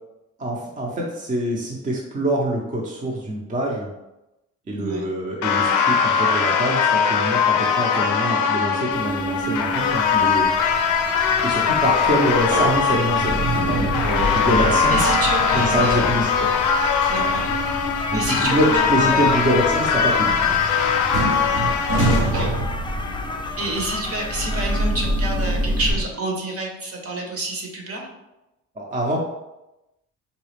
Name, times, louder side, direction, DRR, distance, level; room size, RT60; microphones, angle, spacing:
voice 1, 0.4-3.9 4.7-10.5 11.4-13.3 13.7-15.1 15.5-16.3 18.1-20.6 28.8-29.2, right 1 dB, 25° right, -2 dB, 0.6 m, -24 dB
voice 2, 4.8-5.1 14.3-14.4 14.9-16.1 17.1-17.5 17.9-19.3 22.2-22.5 23.6-28.1, right 2 dB, 50° right, 0 dB, 1.0 m, -28 dB
sound 1, 5.4-22.2, left 6 dB, 85° left, 0.5 m, -21 dB
sound 2, 8.9-25.9, left 2 dB, 15° left, 0.3 m, -34 dB
sound 3, 11.0-11.1 11.4-26.0, right 1 dB, 80° right, 1.0 m, -27 dB
3.9 x 2.3 x 3.2 m, 0.94 s
cardioid pair, 90°, 30 cm